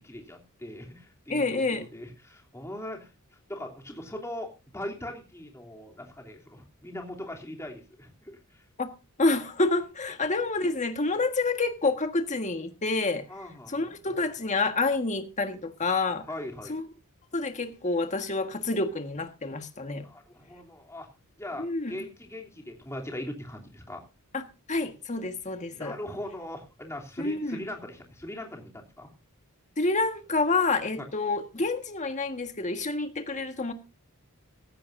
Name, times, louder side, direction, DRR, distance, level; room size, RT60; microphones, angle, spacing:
voice 1, 0.0-3.1 3.5-8.6 13.3-13.8 16.3-16.7 20.0-21.1 21.4-24.0 25.7-29.1 31.0-31.1, left 1 dB, 15° left, 3.1 m, -40 dB
voice 2, 1.3-1.9 8.8-8.9 9.2-13.2 13.7-16.2 16.7-16.8 17.3-20.1 21.6-22.0 24.3-24.4 24.7-25.9 27.2-27.6 29.8-33.7, left 3 dB, 35° left, 1.6 m, -28 dB
16.5 x 14.5 x 2.7 m
head